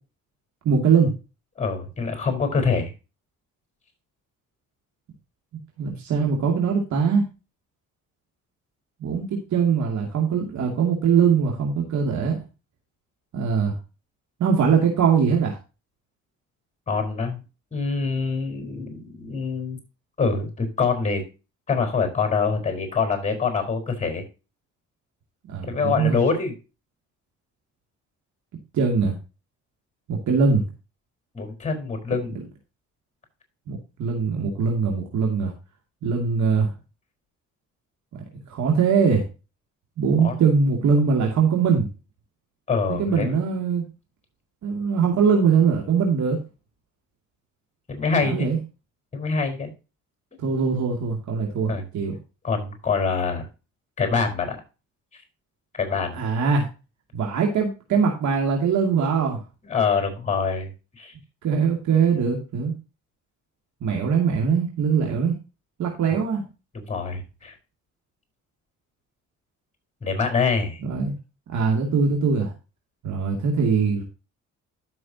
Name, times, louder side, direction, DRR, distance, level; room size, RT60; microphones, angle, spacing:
voice 1, 0.6-1.1 5.8-7.2 9.0-12.4 13.3-13.8 14.4-15.6 25.5-26.2 28.7-29.2 30.1-30.6 32.3-32.4 33.7-35.5 36.0-36.7 38.5-39.3 40.0-41.9 42.9-43.9 44.6-46.4 48.2-48.6 50.4-52.1 56.1-56.7 57.1-59.4 61.4-62.7 63.8-65.4 65.8-66.5 70.8-71.1 71.5-72.5 73.0-74.0, right 6 dB, 70° right, 0 dB, 2.5 m, -22 dB
voice 2, 1.6-2.9 16.9-17.4 17.7-19.8 20.2-21.2 21.7-24.2 25.6-26.5 31.3-32.4 40.2-40.4 42.7-43.3 47.9-48.5 49.1-49.7 51.7-51.9 52.4-53.5 54.0-54.6 55.7-56.2 59.6-60.7 61.0-61.1 66.7-67.5 70.0-70.8, left 5 dB, 25° left, 5 dB, 4.6 m, -25 dB
12.5 x 6.3 x 2.9 m, 0.30 s
cardioid pair, 90°, 30 cm